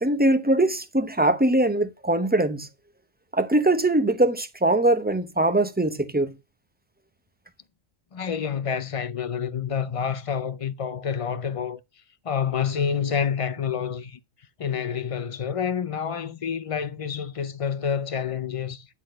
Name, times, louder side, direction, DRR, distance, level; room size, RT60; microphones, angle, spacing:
voice 1, 0.0-2.7 3.3-6.3, right 1 dB, 10° right, 0.7 m, -22 dB
voice 2, 8.1-11.8 12.2-14.2 14.6-18.9, left 7 dB, 40° left, 0.5 m, -28 dB
10.0 x 4.1 x 6.4 m
omnidirectional pair, 1.1 m